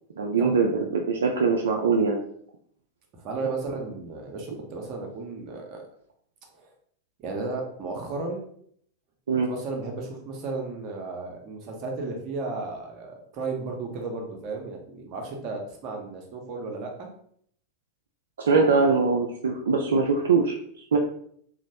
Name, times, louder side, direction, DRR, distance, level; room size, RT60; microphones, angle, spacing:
voice 1, 0.2-2.2 9.3-9.5 18.4-20.5 20.9-21.0, right 4 dB, 65° right, 0 dB, 0.3 m, -22 dB
voice 2, 3.1-5.8 6.5-6.7 7.2-8.4 9.5-17.1, right 3 dB, 40° right, 1 dB, 0.7 m, -34 dB
2.9 x 2.1 x 2.7 m, 0.65 s
figure-of-eight pair, 90°, 0 cm